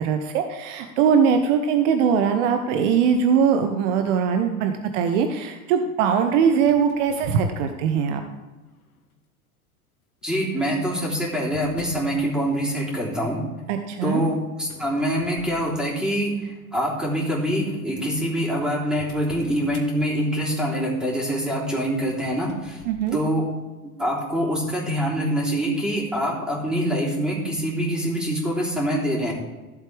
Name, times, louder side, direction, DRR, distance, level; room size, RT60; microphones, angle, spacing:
voice 1, 0.0-8.2 13.7-14.2 22.9-23.2, right 7 dB, 55° right, 7 dB, 1.0 m, -21 dB
sound 1, 6.6-8.0 8.7-9.1 10.2-12.1 14.6-16.2 16.6-16.9 17.7-17.8 17.9-18.0 18.4-19.9 22.0-23.3, left 5 dB, 80° left, 1.4 m, -45 dB
voice 2, 10.2-13.4 14.0-22.8 23.1-23.5 24.0-29.3, equal, ahead, -5 dB, 3.3 m, -25 dB
14.5 x 7.5 x 3.4 m, 1.3 s
figure-of-eight pair, 80°, 43 cm